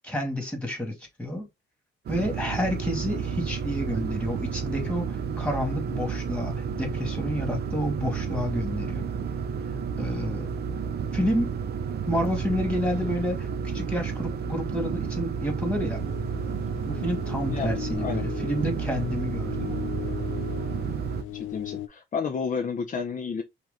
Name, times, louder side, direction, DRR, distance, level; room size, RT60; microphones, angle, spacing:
voice 1, 0.0-1.5 2.1-9.1 10.0-10.5 11.1-11.6 12.1-13.5 13.7-16.0 16.9-19.7, equal, 5° left, 2.3 m, -29 dB
sound 1, 2.1-21.2, right 6 dB, 55° right, 0.6 m, -31 dB
sound 2, 15.9-21.9, left 12 dB, 85° left, 0.7 m, -38 dB
voice 2, 17.5-18.2 21.3-23.4, left 5 dB, 40° left, 0.8 m, -31 dB
4.8 x 2.9 x 3.7 m
cardioid pair, 90°, 20 cm